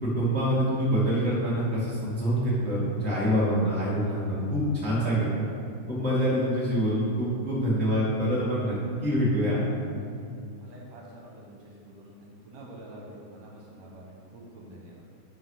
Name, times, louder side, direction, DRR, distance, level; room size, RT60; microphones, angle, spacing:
voice 1, 0.0-5.4 5.9-8.8 9.0-9.6, equal, 5° left, -8 dB, 1.4 m, -26 dB
voice 2, 10.6-15.0, right 1 dB, 65° right, -2 dB, 2.2 m, -47 dB
8.7 x 4.9 x 5.6 m, 2.5 s
omnidirectional pair, 3.5 m